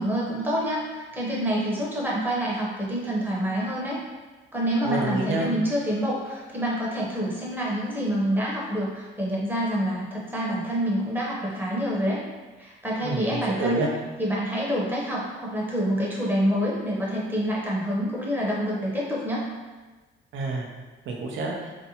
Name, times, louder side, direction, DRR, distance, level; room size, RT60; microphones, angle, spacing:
voice 1, 0.0-4.0 4.5-12.2 12.6-13.9 14.2-19.4, equal, 10° right, -5 dB, 0.7 m, -27 dB
voice 2, 4.9-5.5 13.0-13.9 20.3-20.7 21.1-21.8, right 3 dB, 75° right, 0 dB, 0.5 m, -28 dB
2.6 x 2.1 x 2.7 m, 1.3 s
cardioid pair, 90°, 20 cm